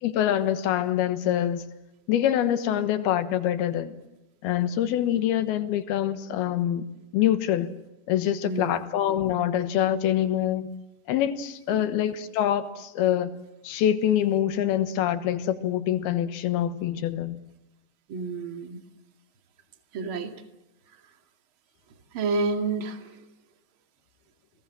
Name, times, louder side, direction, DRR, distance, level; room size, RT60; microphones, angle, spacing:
voice 1, 0.0-1.6 2.1-4.0 4.4-6.9 7.1-7.7 8.1-10.7 11.1-13.4 13.6-17.4, left 11 dB, 70° left, 3.0 m, -25 dB
voice 2, 8.4-8.9 11.7-11.9 18.1-18.8 19.9-20.4 22.1-23.2, right 3 dB, 40° right, 2.2 m, -30 dB
30.0 x 21.0 x 7.4 m
omnidirectional pair, 5.0 m